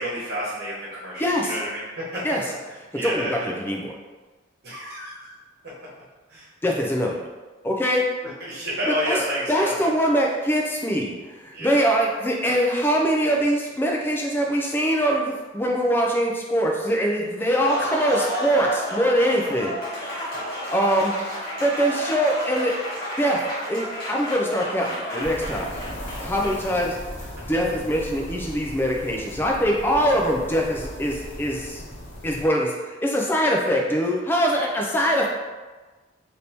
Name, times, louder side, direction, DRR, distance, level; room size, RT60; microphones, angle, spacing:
voice 1, 0.0-3.5 4.6-5.3 5.6-5.7 6.3-6.5 8.2-9.7 11.5-11.9 26.6-26.7, equal, 50° right, -8 dB, 1.2 m, -30 dB
voice 2, 1.2-1.5 2.2-2.4 3.0-4.0 6.6-7.3 7.6-8.1 8.9-9.2 9.5-21.2 21.6-22.7 23.2-23.4 23.7-25.7 26.2-27.0 27.5-31.8 32.2-35.3, equal, 10° left, -1 dB, 0.3 m, -23 dB
Applause, 17.4-26.8, equal, 45° left, 1.1 m, -32 dB
sound 1, 25.2-32.5, equal, 70° left, 0.7 m, -37 dB
3.4 x 2.7 x 2.9 m, 1.3 s
head